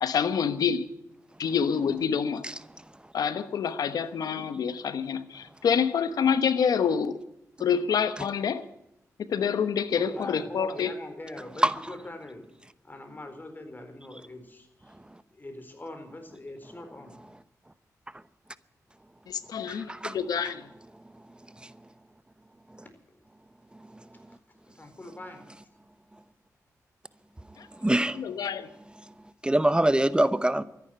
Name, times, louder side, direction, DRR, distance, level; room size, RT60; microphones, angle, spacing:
voice 1, 0.0-0.8 1.4-2.4 3.1-7.2 7.6-8.6 9.2-11.0 19.3-20.6 27.6-27.7 28.1-28.7, left 7 dB, 80° left, 1.1 m, -27 dB
voice 2, 9.9-12.4 12.8-14.9 15.4-17.1 24.8-25.5, left 2 dB, 30° left, 4.4 m, -42 dB
voice 3, 11.6-11.9 19.7-20.2 21.6-21.7 23.9-24.0 27.8-28.2 29.4-30.6, right 1 dB, 15° right, 0.8 m, -24 dB
13.5 x 10.5 x 9.0 m
cardioid pair, 55°, 6 cm